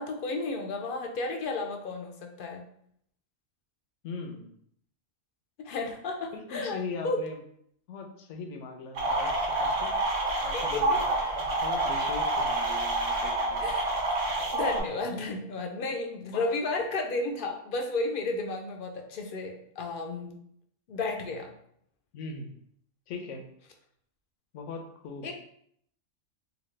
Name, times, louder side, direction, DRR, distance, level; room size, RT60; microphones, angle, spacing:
voice 1, 0.0-2.7 5.6-6.8 7.0-7.2 10.5-10.8 11.2-11.4 13.6-13.9 14.5-20.3 20.9-21.5 25.2-25.3, left 3 dB, 60° left, 3 dB, 0.5 m, -33 dB
voice 2, 4.0-4.5 6.3-7.4 7.9-9.9 10.4-11.0 11.3-13.7 16.3-16.5 16.7-16.8 22.1-22.5 23.1-23.4 24.5-25.3, left 4 dB, 80° left, 3 dB, 1.0 m, -40 dB
sound 1, 8.9-14.8, right 2 dB, 75° right, 1.2 m, -28 dB
4.0 x 2.3 x 3.2 m, 0.68 s
omnidirectional pair, 1.3 m